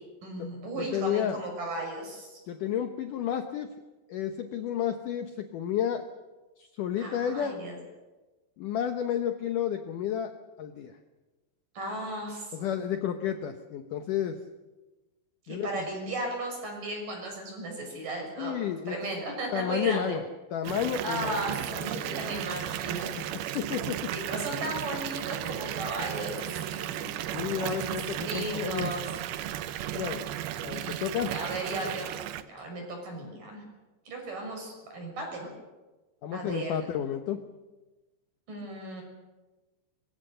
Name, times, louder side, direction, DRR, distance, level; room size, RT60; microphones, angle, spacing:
voice 1, 0.2-2.4 7.0-7.8 11.7-12.7 15.4-18.5 18.9-20.2 21.0-23.6 24.1-29.1 30.7-32.1 32.4-33.6 34.1-35.5 36.3-36.9 38.5-39.0, right 1 dB, 45° right, 2 dB, 7.7 m, -36 dB
voice 2, 0.8-1.4 2.5-3.7 4.1-6.0 6.6-7.6 8.6-10.3 10.6-11.0 12.5-14.4 15.5-15.9 18.4-19.0 19.5-20.2 20.5-21.4 21.9-22.1 23.1-23.3 23.5-24.1 27.3-28.9 29.9-30.2 30.6-31.3 36.2-37.4, left 9 dB, 85° left, 7 dB, 1.8 m, -31 dB
Water tap faucet / Bathtub (filling or washing) / Fill (with liquid), 20.6-32.4, right 12 dB, 75° right, 2.4 m, -35 dB
24.0 x 23.0 x 6.7 m, 1.2 s
omnidirectional pair, 5.2 m